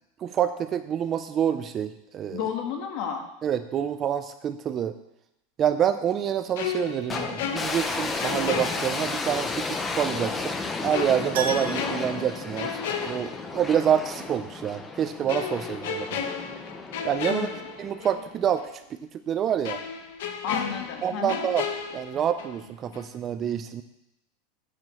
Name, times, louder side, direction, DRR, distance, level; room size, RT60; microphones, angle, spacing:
voice 1, 0.2-2.4 3.4-5.0 5.6-10.6 10.8-12.8 13.0-16.2 17.0-17.5 17.8-18.6 19.3-19.8 21.0-21.7 21.9-23.8, right 9 dB, 20° right, 10 dB, 0.3 m, -27 dB
voice 2, 2.3-3.3 17.3-17.6 20.4-21.5, left 7 dB, 40° left, 4 dB, 1.4 m, -31 dB
sound 1, 6.6-9.5 9.8-10.0 10.9-13.9 14.2-14.4 15.3-18.3 18.6-18.7 19.6-22.7 22.9-23.2, left 7 dB, 65° left, 1.1 m, -34 dB
sound 2, 7.1-18.3, left 3 dB, 10° left, 0.6 m, -33 dB
Keyboard (musical), 11.3-13.4 13.6-13.7 16.5-16.6 16.8-16.9, right 5 dB, 85° right, 2.4 m, -36 dB
9.3 x 5.1 x 7.5 m, 0.86 s
supercardioid pair, 175°, 0 cm